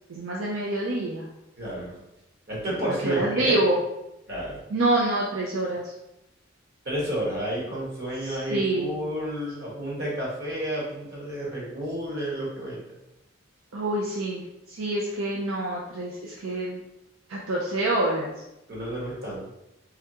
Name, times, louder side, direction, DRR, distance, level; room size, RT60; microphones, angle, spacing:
voice 1, 0.1-1.3 3.0-3.8 4.7-5.9 8.2-9.0 13.7-16.8 17.3-18.3, right 2 dB, 80° right, -2 dB, 0.5 m, -26 dB
voice 2, 1.6-2.0 2.5-3.6 4.3-4.6 6.8-12.8 18.7-19.5, right 1 dB, 55° right, -5 dB, 1.4 m, -31 dB
3.5 x 3.4 x 2.8 m, 0.89 s
head